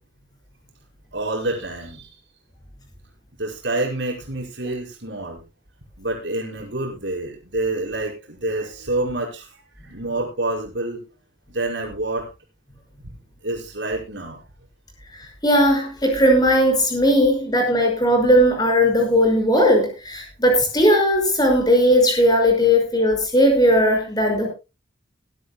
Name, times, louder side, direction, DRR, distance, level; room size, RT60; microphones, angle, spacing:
voice 1, 1.1-2.1 3.4-5.4 6.0-11.0 11.5-12.3 13.4-14.4, right 2 dB, 75° right, -1 dB, 5.3 m, -27 dB
voice 2, 15.4-24.5, equal, 20° left, 2 dB, 5.8 m, -17 dB
21.0 x 12.5 x 2.2 m, 0.29 s
head